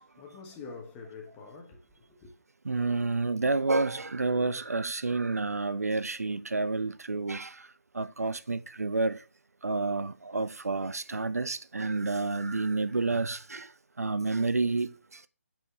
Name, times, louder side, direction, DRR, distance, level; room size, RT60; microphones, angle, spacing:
voice 1, 0.0-2.3, left 4 dB, 15° left, 1.1 m, -46 dB
voice 2, 2.6-9.3 9.6-15.3, right 3 dB, 80° right, 0.4 m, -30 dB
5.2 x 4.4 x 4.1 m
figure-of-eight pair, 150°, 8 cm